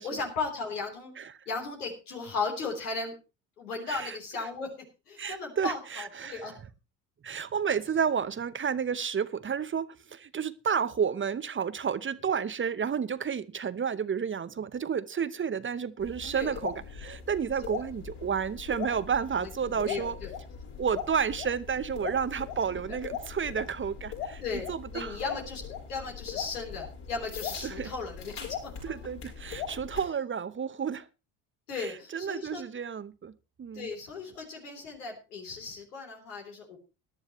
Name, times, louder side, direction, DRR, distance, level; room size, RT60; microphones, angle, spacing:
voice 1, 0.0-1.1 1.5-3.1 3.6-4.7 5.1-6.6 16.3-16.6 17.6-17.7 19.4-20.3 22.7-23.0 24.4-24.7 24.9-28.6 28.9-29.0 31.7-32.6 33.7-36.8, left 4 dB, 90° left, 3.5 m, -36 dB
voice 2, 3.9-4.5 5.2-6.5 7.2-20.2 20.8-24.4 24.7-25.2 27.6-27.9 28.8-31.1 31.8-33.3 33.6-33.9, right 7 dB, 25° right, 0.8 m, -31 dB
sound 1, 16.0-30.0, left 8 dB, 65° left, 7.1 m, -40 dB
18.5 x 11.0 x 3.0 m
hypercardioid pair, 60°, 45 cm